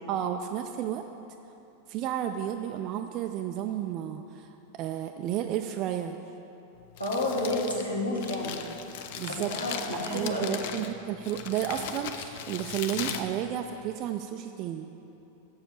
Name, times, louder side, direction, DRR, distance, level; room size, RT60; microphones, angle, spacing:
voice 1, 0.1-1.0 1.9-6.2 9.2-9.5 9.9-14.9, right 10 dB, 40° right, 5 dB, 0.3 m, -32 dB
Crumpling crinkling, 6.8-14.1, left 8 dB, 50° left, 0.5 m, -39 dB
voice 2, 7.0-8.6 9.3-10.6, left 1 dB, 85° left, -4 dB, 1.6 m, -30 dB
7.1 x 6.5 x 7.2 m, 2.9 s
figure-of-eight pair, 90°, 0 cm